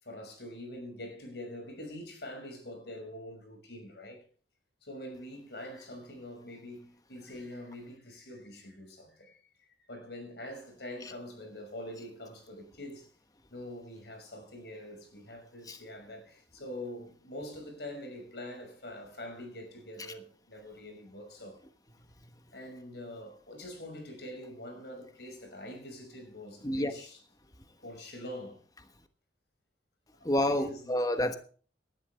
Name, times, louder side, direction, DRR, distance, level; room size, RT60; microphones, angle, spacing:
voice 1, 0.0-4.2 4.8-13.1 13.5-21.6 22.5-27.2 27.8-28.6 30.2-31.0, left 1 dB, 60° left, 5.8 m, -44 dB
voice 2, 30.2-31.4, left 1 dB, 20° left, 1.2 m, -28 dB
18.5 x 12.0 x 3.5 m
head